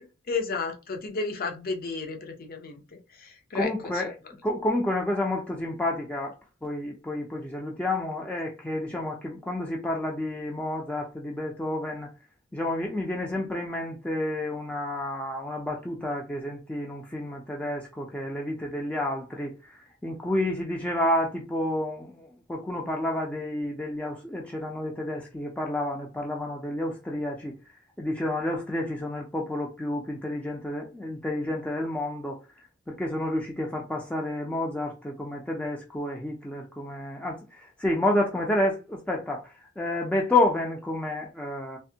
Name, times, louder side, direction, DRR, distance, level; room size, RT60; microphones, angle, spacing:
voice 1, 0.0-3.7, left 4 dB, 50° left, 0.6 m, -33 dB
voice 2, 3.5-4.1 4.4-6.3 6.6-12.1 12.5-27.5 28.0-32.4 32.9-41.8, left 1 dB, 5° left, 0.4 m, -30 dB
3.3 x 2.1 x 2.7 m
head